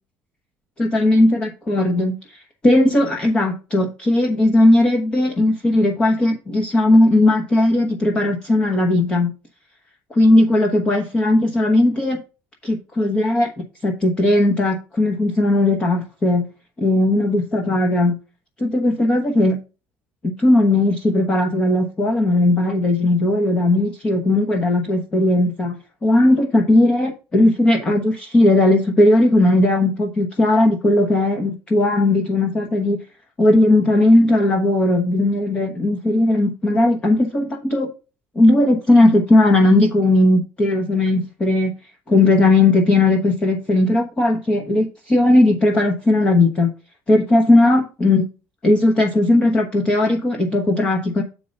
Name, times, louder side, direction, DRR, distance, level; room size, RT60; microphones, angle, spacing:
voice 1, 0.8-9.3 10.1-12.2 12.6-13.5 13.8-16.5 16.8-18.2 18.6-19.6 20.2-33.0 33.4-37.9 38.3-41.7 42.1-46.7 47.1-48.2 48.6-51.2, left 2 dB, 20° left, 2 dB, 1.0 m, -17 dB
7.8 x 4.6 x 5.2 m, 0.31 s
cardioid pair, 175°, 5 cm